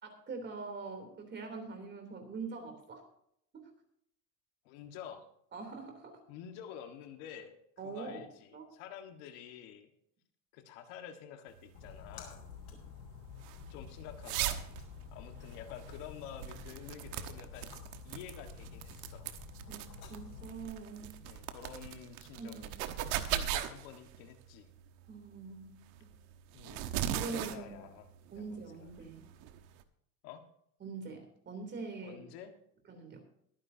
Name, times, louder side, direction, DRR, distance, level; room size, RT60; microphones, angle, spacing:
voice 1, 0.0-3.0 3.5-3.7 5.5-6.2 7.8-8.2 8.5-8.7 19.7-21.1 22.4-22.7 25.1-25.9 27.1-27.7 28.3-29.2 30.8-32.2 32.9-33.2, right 4 dB, 25° right, 4 dB, 3.3 m, -43 dB
voice 2, 4.6-5.2 6.3-7.6 7.8-9.9 10.5-12.4 13.7-14.6 15.1-17.7 18.0-19.3 21.2-22.7 23.0-24.7 26.5-28.1 28.4-28.9 30.2-30.4 32.0-32.5, left 9 dB, 65° left, 5 dB, 1.8 m, -49 dB
sound 1, 11.6-29.8, right 11 dB, 70° right, 1.4 m, -40 dB
Splash splatter, 11.7-20.6, left 6 dB, 85° left, 6.1 m, -50 dB
22.5 x 9.6 x 2.8 m, 0.71 s
cardioid pair, 150°, 44 cm